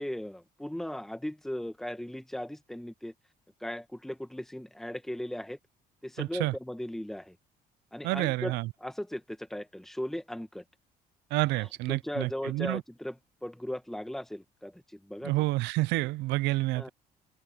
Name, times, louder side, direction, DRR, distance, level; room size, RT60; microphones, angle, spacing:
voice 1, 0.0-3.1 3.6-5.6 6.0-7.4 7.9-10.6 11.6-15.4 16.7-16.9, left 1 dB, ahead, 1.6 m, -37 dB
voice 2, 6.2-6.5 8.0-8.7 11.3-12.8 15.2-16.9, right 20 dB, 90° right, 0.4 m, -29 dB
cardioid pair, 110°, 17 cm